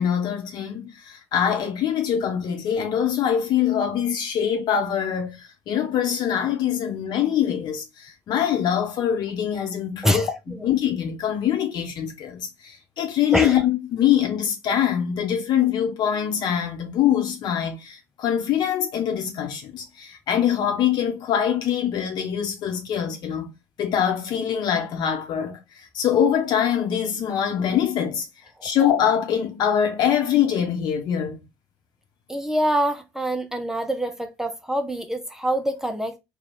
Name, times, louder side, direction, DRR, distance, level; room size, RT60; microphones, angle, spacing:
voice 1, 0.0-5.4 5.7-23.5 23.8-25.6 25.9-28.3 28.6-31.4, left 9 dB, 55° left, 1.0 m, -23 dB
voice 2, 10.0-10.7 13.3-13.6 32.3-36.2, equal, 5° right, 0.6 m, -25 dB
3.1 x 2.4 x 4.2 m
figure-of-eight pair, 55°, 9 cm